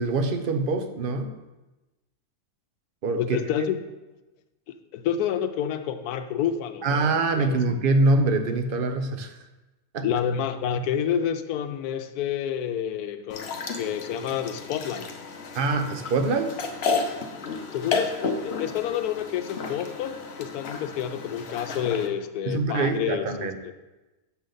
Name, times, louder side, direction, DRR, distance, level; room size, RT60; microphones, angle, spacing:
voice 1, 0.0-1.3 3.0-3.4 6.8-9.4 9.9-10.1 15.5-16.6 22.5-23.6, right 3 dB, 50° right, 7 dB, 0.7 m, -24 dB
voice 2, 3.2-3.8 4.7-7.6 10.0-15.1 17.7-23.3, left 9 dB, 85° left, 9 dB, 1.1 m, -29 dB
sound 1, 13.3-22.1, left 4 dB, 50° left, 0.9 m, -32 dB
8.0 x 6.5 x 3.9 m, 1.1 s
omnidirectional pair, 1.6 m